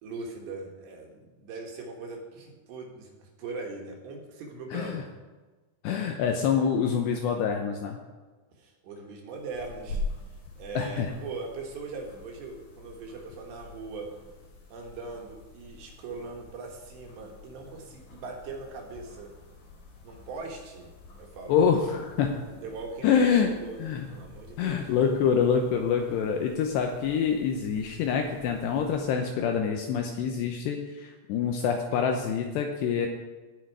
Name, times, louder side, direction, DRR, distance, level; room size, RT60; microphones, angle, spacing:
voice 1, 0.0-5.1 8.6-10.0 10.6-14.1 14.7-19.3 20.0-20.9 21.2-21.8 22.6-24.9, right 3 dB, 65° right, 0 dB, 3.4 m, -40 dB
voice 2, 4.7-5.0 5.8-8.0 10.8-11.1 21.5-22.4 23.0-23.5 23.8-24.1 24.6-33.1, left 7 dB, 80° left, 4 dB, 2.6 m, -26 dB
sound 1, 9.3-29.0, left 2 dB, 50° left, 3.4 m, -45 dB
18.0 x 6.3 x 4.7 m, 1.3 s
omnidirectional pair, 5.6 m